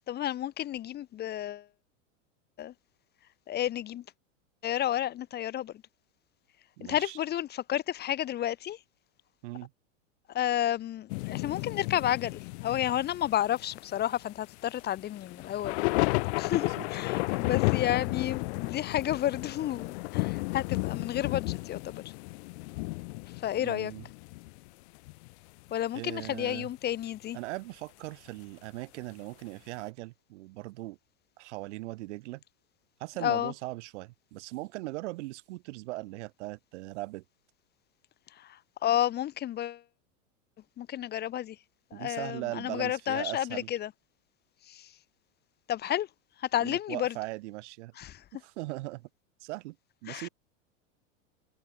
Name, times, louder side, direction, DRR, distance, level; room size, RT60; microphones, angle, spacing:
voice 1, 0.1-1.7 2.6-2.7 3.5-4.0 4.6-5.7 6.8-8.8 10.3-15.8 16.3-22.0 23.4-23.9 25.7-27.4 33.2-33.5 38.4-39.8 40.8-41.6 41.9-43.9 44.7-44.9 45.7-46.1 46.4-47.1 48.0-48.2 50.1-50.3, left 12 dB, 25° left, 0.9 m, -31 dB
voice 2, 6.8-7.2 9.4-9.7 16.5-16.8 17.2-17.5 23.5-24.1 25.9-26.7 27.3-31.0 31.4-32.4 33.0-37.2 41.9-43.7 46.6-47.9 48.3-49.1 49.4-49.8 50.0-50.3, right 20 dB, 65° right, 1.4 m, -39 dB
sound 1, 11.1-24.7 25.0-25.3 26.1-26.3, left 26 dB, 55° left, 1.5 m, -33 dB
hypercardioid pair, 125°, 38 cm